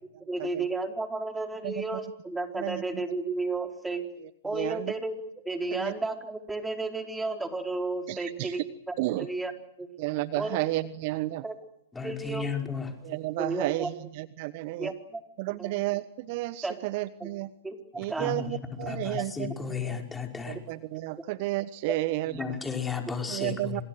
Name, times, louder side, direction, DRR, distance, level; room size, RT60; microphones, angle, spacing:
voice 1, 0.3-4.1 4.4-5.2 5.4-8.6 8.9-9.5 9.8-9.9 10.4-10.6 11.4-11.5 12.0-12.5 13.4-13.9 14.8-15.8 16.6-16.8 17.2-17.3 17.6-18.4 21.9-22.0, right 3 dB, 5° right, 4 dB, 4.4 m, -33 dB
voice 2, 1.6-2.0 2.5-2.8 4.5-4.9 5.7-5.9 8.1-8.6 9.0-9.3 10.0-11.4 13.0-14.9 15.4-17.5 18.0-20.0 20.5-22.6 23.3-23.8, right 18 dB, 45° right, 15 dB, 1.1 m, -32 dB
voice 3, 11.9-12.9 18.2-20.6 22.3-23.8, left 6 dB, 10° left, 3 dB, 5.4 m, -34 dB
29.5 x 27.5 x 6.5 m, 0.77 s
figure-of-eight pair, 110°, 0 cm